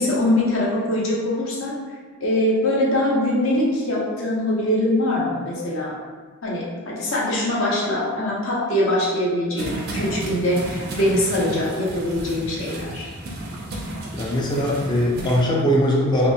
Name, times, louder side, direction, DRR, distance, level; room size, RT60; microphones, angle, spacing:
voice 1, 0.0-1.7 2.2-6.0 6.4-13.1, left 1 dB, 60° left, -5 dB, 0.7 m, -22 dB
sound 1, 9.6-15.4, right 1 dB, 45° right, 0.4 m, -32 dB
voice 2, 14.1-16.3, equal, 20° left, -3 dB, 0.3 m, -20 dB
2.9 x 2.7 x 2.3 m, 1.4 s
head